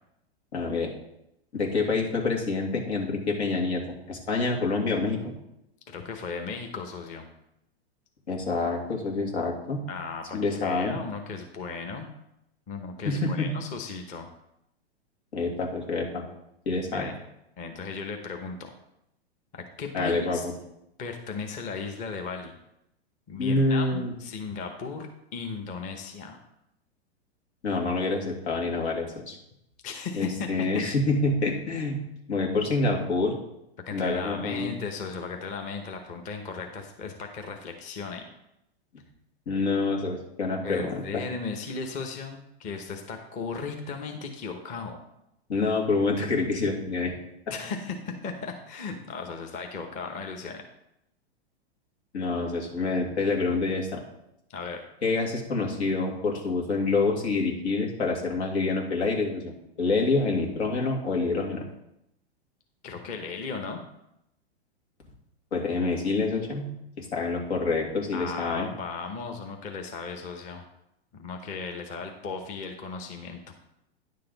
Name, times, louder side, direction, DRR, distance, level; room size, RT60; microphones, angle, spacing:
voice 1, 0.5-0.9 1.5-5.3 8.3-9.8 10.3-10.9 13.0-13.5 15.3-16.2 16.7-17.1 19.9-20.5 23.4-24.1 27.6-29.4 30.2-32.0 32.3-33.3 33.9-34.7 39.5-41.2 45.5-47.1 52.1-54.0 55.0-59.5 59.8-61.6 65.5-66.7 67.0-68.7, left 3 dB, 85° left, 0 dB, 2.4 m, -27 dB
voice 2, 5.9-7.3 9.9-12.1 12.7-14.3 16.9-17.2 17.6-18.7 19.5-20.4 21.0-22.5 23.3-25.1 25.3-26.4 29.8-30.8 33.9-38.2 40.6-45.0 47.5-50.6 54.5-54.8 62.8-63.8 68.1-70.6 71.1-73.4, left 4 dB, 25° left, 4 dB, 0.9 m, -36 dB
10.0 x 6.7 x 4.0 m, 0.82 s
hypercardioid pair, 145°, 32 cm